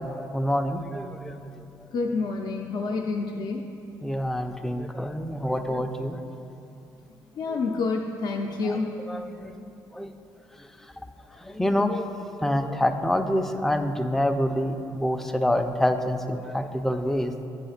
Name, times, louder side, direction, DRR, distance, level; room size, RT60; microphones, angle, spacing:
voice 1, 0.0-1.9 4.0-6.2 7.5-7.6 8.6-8.8 9.1-9.6 9.9-10.1 10.5-10.9 11.3-17.5, left 1 dB, 5° left, 6 dB, 0.4 m, -27 dB
voice 2, 1.9-3.6 7.3-9.0, left 3 dB, 60° left, 0 dB, 0.5 m, -28 dB
9.0 x 3.2 x 5.7 m, 2.8 s
cardioid pair, 105°, 8 cm